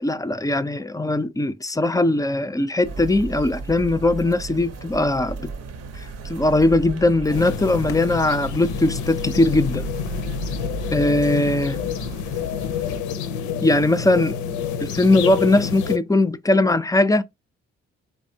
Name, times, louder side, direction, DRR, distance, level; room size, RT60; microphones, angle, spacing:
voice 1, 0.0-5.5 6.3-9.8 10.9-11.8 13.6-14.3 14.8-17.2, left 2 dB, 10° left, 0.4 m, -20 dB
sound 1, 2.8-13.0, right 3 dB, 55° right, 0.7 m, -34 dB
sound 2, 7.3-16.0, left 7 dB, 80° left, 0.5 m, -28 dB
3.4 x 3.2 x 2.7 m
hypercardioid pair, 45°, 30 cm